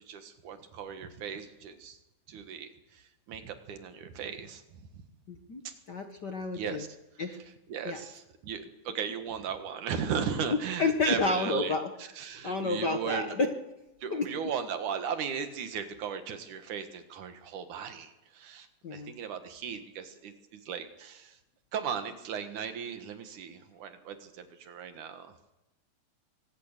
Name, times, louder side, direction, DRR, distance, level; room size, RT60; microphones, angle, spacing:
voice 1, 0.0-2.0 2.3-4.6 5.6-5.7 6.5-6.9 7.7-13.4 14.0-21.4 21.7-25.3, right 7 dB, 75° right, 8 dB, 3.1 m, -37 dB
voice 2, 5.3-5.6 5.9-6.8 7.2-7.4 7.8-8.0 10.8-11.8 12.2-13.5 14.1-14.3 18.8-19.1, left 3 dB, 50° left, 5 dB, 1.4 m, -30 dB
24.0 x 17.0 x 6.7 m, 0.96 s
omnidirectional pair, 3.5 m